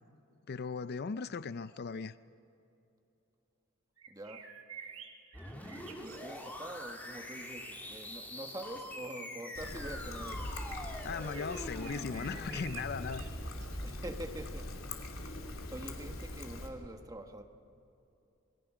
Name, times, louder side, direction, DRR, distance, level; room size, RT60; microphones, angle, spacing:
voice 1, 0.5-2.1 11.0-13.2, left 5 dB, 50° left, 0.5 m, -38 dB
sound 1, 4.0-6.8 11.2-14.3, right 6 dB, 75° right, 1.8 m, -51 dB
voice 2, 4.1-4.5 5.5-10.5 13.8-15.1 15.7-17.4, right 1 dB, 20° right, 1.4 m, -45 dB
sound 2, 5.3-15.0, left 1 dB, 10° left, 2.8 m, -45 dB
Trickle dribble, 9.5-16.7, left 1 dB, 90° left, 2.7 m, -43 dB
28.0 x 19.5 x 6.2 m
head